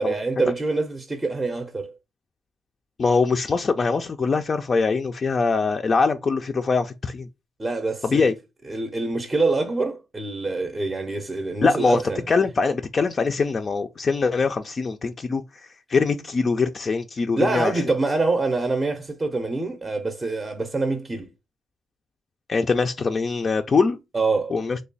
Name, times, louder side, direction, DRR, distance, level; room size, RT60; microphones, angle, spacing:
voice 1, 0.0-1.9 7.6-8.3 8.7-12.2 17.4-21.3 24.1-24.6, right 3 dB, 20° right, 0.6 m, -25 dB
voice 2, 3.0-7.3 8.0-8.3 11.6-12.0 12.3-15.4 15.9-17.7 22.5-24.0 24.5-24.8, left 4 dB, 40° left, 0.3 m, -22 dB
3.1 x 2.2 x 3.8 m
cardioid pair, 90°, 0 cm